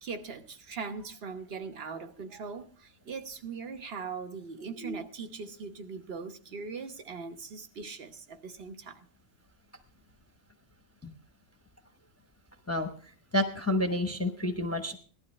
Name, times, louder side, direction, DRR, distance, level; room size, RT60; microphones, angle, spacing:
voice 1, 0.0-9.0, right 5 dB, 50° right, 1.2 m, -40 dB
voice 2, 13.3-15.0, left 1 dB, 15° left, 0.8 m, -29 dB
18.0 x 12.0 x 3.2 m
omnidirectional pair, 1.3 m